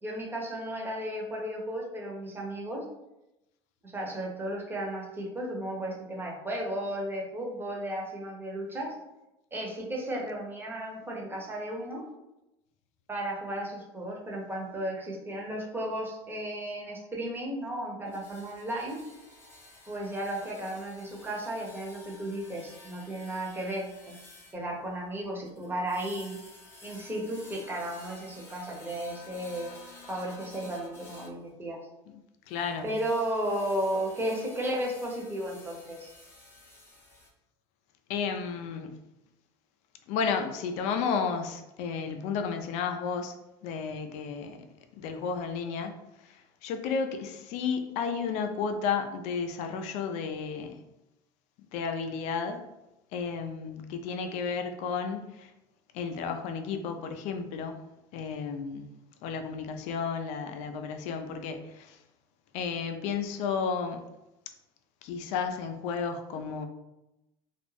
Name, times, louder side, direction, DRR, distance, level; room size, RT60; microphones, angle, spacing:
voice 1, 0.0-2.9 3.8-9.0 9.5-12.1 13.1-19.0 19.9-24.2 24.5-26.4 26.8-29.7 30.1-31.9 32.8-36.1, right 1 dB, 15° right, -1 dB, 0.7 m, -34 dB
sound 1, 18.1-31.4 32.5-37.3, left 2 dB, 20° left, 0.6 m, -52 dB
voice 2, 32.5-32.9 38.1-39.0 40.1-43.3 43.6-44.6 45.0-46.0 46.2-50.8 51.7-52.6 53.1-55.5 55.9-57.8 58.1-58.9 59.2-62.0 62.5-64.0 65.0-66.7, left 6 dB, 65° left, 6 dB, 0.4 m, -32 dB
2.4 x 2.0 x 3.2 m, 0.93 s
supercardioid pair, 100°, 13 cm